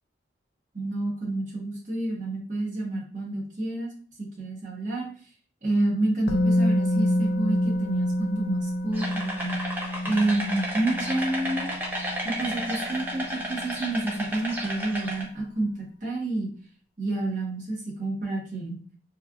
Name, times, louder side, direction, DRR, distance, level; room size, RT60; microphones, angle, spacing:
voice 1, 0.7-3.9 4.4-5.1 5.6-9.6 10.0-11.7 12.2-16.5 17.0-18.8, right 2 dB, 45° right, -3 dB, 1.0 m, -29 dB
Musical instrument, 6.3-14.2 14.5-14.6, left 1 dB, 60° left, 0.3 m, -28 dB
sound 1, 8.9-15.2, equal, 10° right, 0.5 m, -33 dB
3.2 x 2.4 x 2.3 m, 0.43 s
head